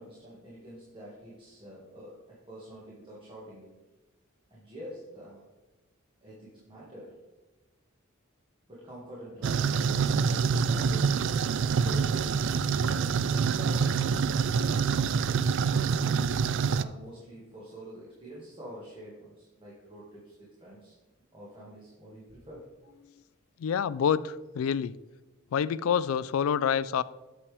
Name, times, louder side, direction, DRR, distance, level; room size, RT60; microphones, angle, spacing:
voice 1, 0.0-3.9 4.5-5.5 6.2-7.3 8.7-14.9 16.8-20.9 21.3-22.7, right 1 dB, 25° right, 1.7 m, -47 dB
sound 1, 9.4-16.8, right 6 dB, 60° right, 0.3 m, -26 dB
voice 2, 23.6-25.0 25.5-27.0, left 7 dB, 80° left, 0.3 m, -27 dB
8.3 x 6.9 x 3.4 m
head